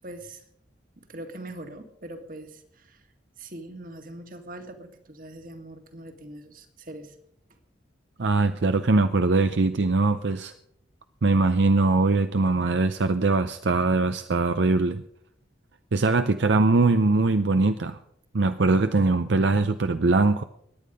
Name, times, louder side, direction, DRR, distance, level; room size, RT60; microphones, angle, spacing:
voice 1, 0.0-0.4 1.0-3.1 3.4-7.2, right 1 dB, 50° right, 6 dB, 1.9 m, -42 dB
voice 2, 8.2-10.5 11.2-15.0 15.9-18.0 18.3-20.4, right 3 dB, 75° right, 10 dB, 0.6 m, -22 dB
22.5 x 9.5 x 5.2 m, 0.72 s
head